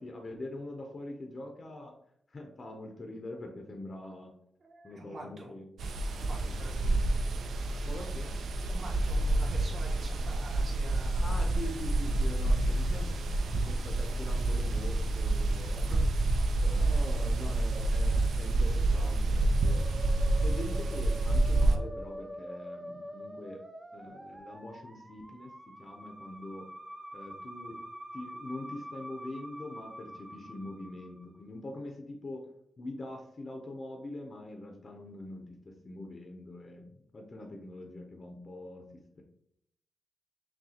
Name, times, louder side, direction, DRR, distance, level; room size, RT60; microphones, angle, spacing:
voice 1, 0.0-2.0 2.3-4.3 4.8-5.8 6.4-7.0 7.8-8.4 11.2-16.1 16.6-19.8 20.4-23.6 23.9-26.7 27.1-27.8 28.1-32.5 32.8-39.2, left 2 dB, 40° left, 3 dB, 0.6 m, -43 dB
voice 2, 4.6-5.6 6.1-6.9 8.7-11.6 16.5-16.6, right 1 dB, 50° right, -1 dB, 1.1 m, -47 dB
sound 1, 5.8-21.8, right 2 dB, 75° right, 0.5 m, -28 dB
Musical instrument, 19.6-31.4, equal, 15° right, 0.5 m, -45 dB
6.1 x 2.3 x 2.8 m, 0.72 s
cardioid pair, 95°, 0 cm